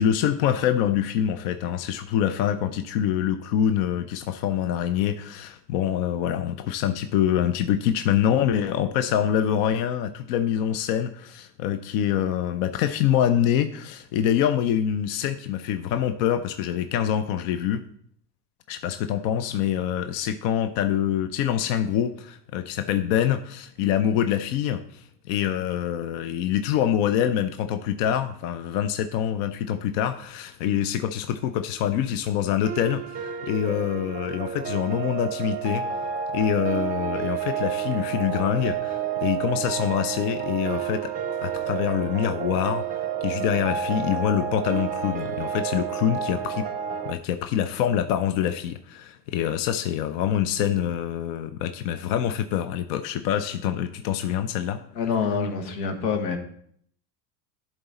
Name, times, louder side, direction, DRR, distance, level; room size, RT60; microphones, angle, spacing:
voice 1, 0.0-17.8 18.7-35.8 36.3-41.1 41.4-46.7 47.1-54.8, left 10 dB, 55° left, 10 dB, 0.6 m, -25 dB
sound 1, 32.6-47.1, right 8 dB, 15° right, 0.6 m, -30 dB
voice 2, 55.0-56.4, left 5 dB, 85° left, 6 dB, 1.4 m, -26 dB
11.0 x 4.0 x 4.1 m, 0.64 s
supercardioid pair, 120°, 48 cm